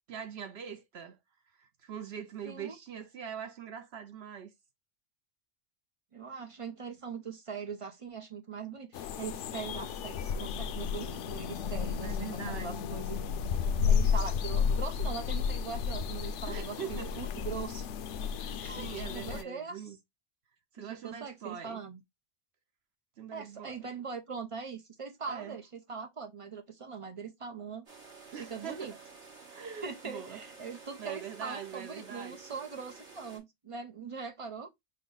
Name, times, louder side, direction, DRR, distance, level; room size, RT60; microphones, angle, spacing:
voice 1, 0.1-1.2 1.5-4.5 12.0-12.9 16.5-17.2 18.3-20.0 20.7-21.8 23.2-23.8 25.3-25.6 28.3-29.0 29.5-30.4 31.0-32.4, right 8 dB, 65° right, 0.9 m, -43 dB
voice 2, 2.4-2.8 6.1-13.2 13.9-17.9 18.6-18.9 19.1-19.8 20.8-22.0 23.3-27.8 28.4-28.9 29.8-34.7, right 5 dB, 30° right, 0.8 m, -41 dB
sound 1, 8.9-19.4, left 6 dB, 85° left, 0.9 m, -32 dB
sound 2, 27.9-33.4, right 4 dB, 85° right, 2.3 m, -52 dB
5.6 x 2.2 x 3.8 m
omnidirectional pair, 1.2 m